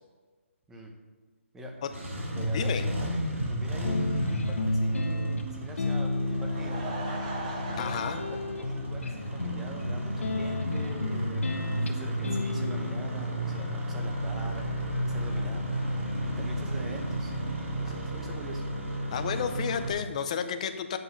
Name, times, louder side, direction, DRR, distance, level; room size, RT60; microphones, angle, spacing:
Engine starting, 1.8-19.9, equal, 75° right, 2.9 m, -33 dB
voice 1, 2.3-7.1 7.7-17.3 17.8-18.7, right 1 dB, 5° right, 1 dB, 0.8 m, -44 dB
sound 1, 3.8-13.1, left 2 dB, 75° left, 1.2 m, -32 dB
Laughter / Crowd, 6.1-9.6 9.9-10.0 10.6-10.7 10.8-10.9, right 2 dB, 30° right, 1.5 m, -40 dB
voice 2, 7.8-8.2 19.1-21.0, left 7 dB, 30° left, 8 dB, 0.6 m, -31 dB
9.1 x 6.9 x 5.5 m, 1.4 s
hypercardioid pair, 165°, 7 cm